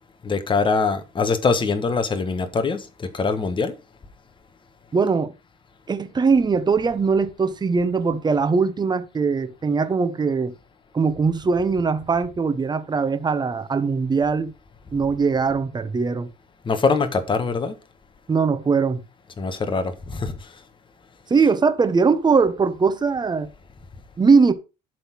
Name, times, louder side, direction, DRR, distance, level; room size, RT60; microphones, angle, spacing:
voice 1, 0.2-3.7 16.6-17.7 19.4-20.3, left 4 dB, 30° left, 1.4 m, -23 dB
voice 2, 4.9-5.3 5.9-10.5 10.9-14.5 14.9-16.3 18.3-19.0 21.3-23.5 24.2-24.5, right 5 dB, 25° right, 1.3 m, -21 dB
12.0 x 4.1 x 6.1 m
cardioid pair, 110°, 17 cm